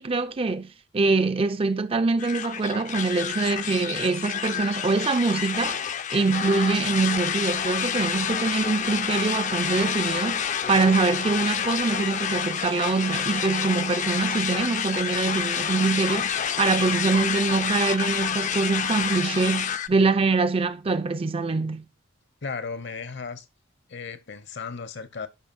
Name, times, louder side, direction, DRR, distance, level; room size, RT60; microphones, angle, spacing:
voice 1, 0.0-5.8 6.1-21.8, right 3 dB, 30° right, 0.4 m, -24 dB
sound 1, 2.2-19.9, left 8 dB, 40° left, 0.5 m, -28 dB
voice 2, 22.4-23.5 23.9-25.3, left 5 dB, 60° left, 0.9 m, -35 dB
11.0 x 5.1 x 2.6 m
head